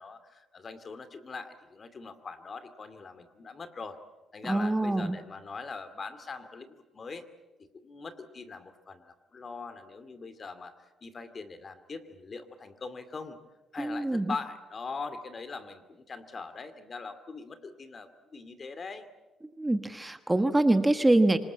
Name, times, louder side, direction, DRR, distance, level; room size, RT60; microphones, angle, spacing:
voice 1, 0.0-4.0 4.3-7.3 7.6-10.7 11.0-13.4 13.7-19.1, left 4 dB, 40° left, 11 dB, 2.4 m, -42 dB
voice 2, 4.4-5.2 13.8-14.3 19.6-21.4, right 2 dB, 15° right, 9 dB, 1.3 m, -25 dB
26.0 x 20.0 x 8.6 m, 1.1 s
cardioid pair, 90°, 0 cm